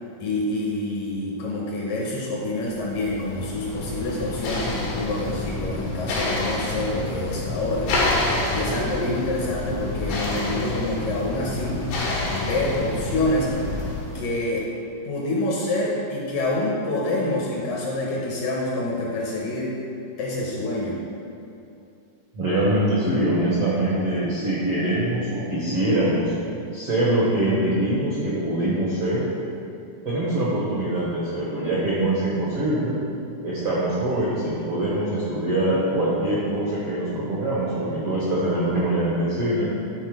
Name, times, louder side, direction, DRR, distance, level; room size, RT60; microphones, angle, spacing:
voice 1, 0.2-7.9 8.5-11.8 12.3-13.5 14.1-14.7 15.0-19.7 20.2-21.0, left 2 dB, 70° left, -3 dB, 2.3 m, -27 dB
sound 1, 2.7-14.2, left 2 dB, 85° left, 3.7 m, -28 dB
voice 2, 22.3-26.3 26.7-29.3 30.0-33.0 33.4-39.7, right 1 dB, 70° right, -7 dB, 1.4 m, -23 dB
11.0 x 4.4 x 4.8 m, 2.7 s
omnidirectional pair, 4.6 m